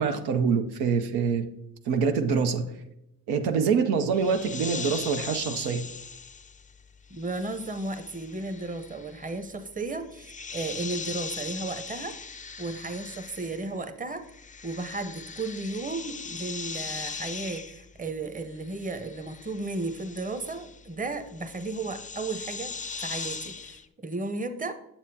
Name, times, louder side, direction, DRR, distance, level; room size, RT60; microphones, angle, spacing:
voice 1, 0.0-1.5 1.9-2.7 3.3-5.8, right 6 dB, 90° right, 0.6 m, -25 dB
sound 1, 4.1-13.9 14.1-23.8, left 5 dB, 20° left, 0.4 m, -40 dB
voice 2, 7.1-12.1 12.6-14.2 14.6-23.8 24.0-24.7, right 2 dB, 20° right, 0.8 m, -34 dB
7.4 x 7.2 x 2.7 m
supercardioid pair, 55°, 38 cm